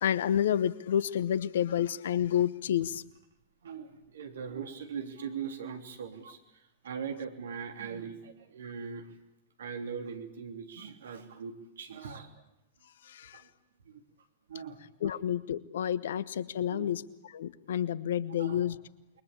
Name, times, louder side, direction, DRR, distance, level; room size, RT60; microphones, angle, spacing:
voice 1, 0.0-3.0 13.1-13.4 15.0-18.8, left 10 dB, 70° left, 18 dB, 1.0 m, -30 dB
voice 2, 3.6-6.4 6.8-9.1 9.6-12.3 13.3-13.4 14.5-15.1 16.7-16.9 18.4-18.7, right 6 dB, 70° right, 5 dB, 3.3 m, -40 dB
28.0 x 22.5 x 8.6 m, 0.88 s
figure-of-eight pair, 95°, 0 cm